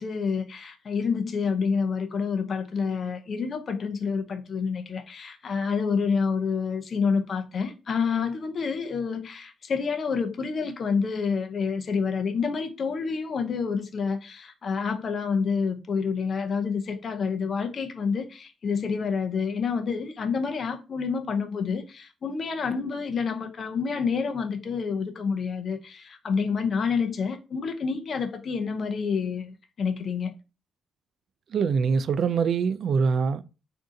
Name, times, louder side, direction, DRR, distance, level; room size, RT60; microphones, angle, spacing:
voice 1, 0.0-30.3, left 5 dB, 45° left, 0.6 m, -28 dB
voice 2, 31.5-33.4, right 5 dB, 60° right, 0.3 m, -24 dB
3.7 x 2.6 x 3.7 m
cardioid pair, 120°, 0 cm